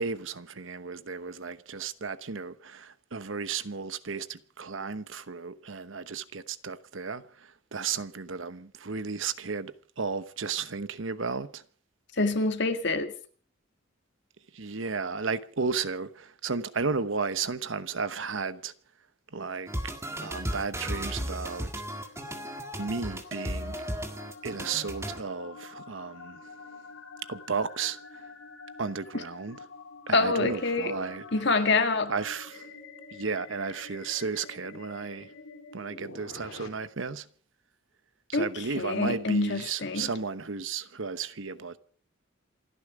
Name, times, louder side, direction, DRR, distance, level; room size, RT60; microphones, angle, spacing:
voice 1, 0.0-11.6 14.5-18.7 19.3-19.7 20.2-21.7 22.8-23.7 24.4-26.4 27.3-28.2 28.8-29.6 30.1-31.2 32.1-32.7 33.1-35.3 35.7-37.3 38.3-41.8, right 5 dB, 70° right, 1.0 m, -34 dB
voice 2, 12.2-13.1 30.1-30.9 31.3-32.1 38.3-38.5 38.8-40.1, left 3 dB, 60° left, 2.0 m, -26 dB
sound 1, 19.7-25.2, equal, 15° right, 1.8 m, -35 dB
sound 2, 21.6-36.7, left 4 dB, 85° left, 3.1 m, -47 dB
28.0 x 10.5 x 5.0 m
head